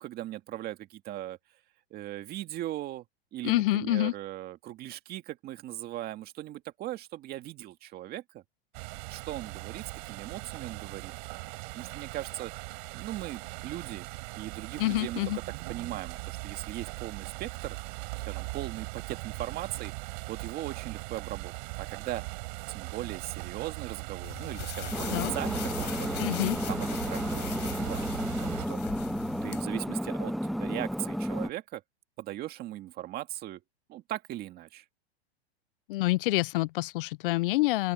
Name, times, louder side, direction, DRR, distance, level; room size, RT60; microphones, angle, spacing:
voice 1, 0.0-1.4 1.9-3.1 3.3-8.4 9.1-11.2 11.7-12.5 12.9-14.1 14.4-15.2 15.7-17.8 18.2-19.9 20.3-21.5 21.8-22.2 22.7-26.2 26.7-28.1 28.4-28.8 29.4-31.8 32.2-33.6 33.9-34.8, right 14 dB, 30° right, 2.1 m, -39 dB
voice 2, 3.4-4.1 14.8-15.4 25.1-25.3 26.2-26.6 35.9-37.9, left 18 dB, 55° left, 0.6 m, -27 dB
sound 1, 8.7-28.7, right 30 dB, 50° right, 5.8 m, -40 dB
sound 2, 24.2-29.6, left 17 dB, 35° left, 5.7 m, -41 dB
sound 3, 24.9-31.5, equal, ahead, 0.4 m, -32 dB
open air
supercardioid pair, 145°, 32 cm